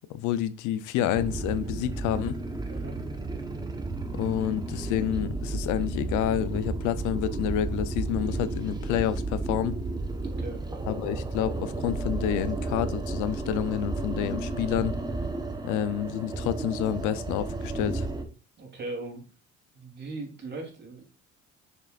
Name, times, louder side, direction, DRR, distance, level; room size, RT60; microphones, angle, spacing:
voice 1, 0.1-2.4 4.1-9.7 10.9-15.0 15.6-18.1, left 11 dB, 80° left, 0.7 m, -29 dB
sound 1, 1.1-18.2, right 2 dB, 15° right, 1.2 m, -33 dB
voice 2, 2.7-3.0 10.2-10.8 18.6-19.2 19.7-21.1, right 2 dB, 35° right, 3.3 m, -39 dB
6.9 x 6.6 x 2.5 m
cardioid pair, 115°, 30 cm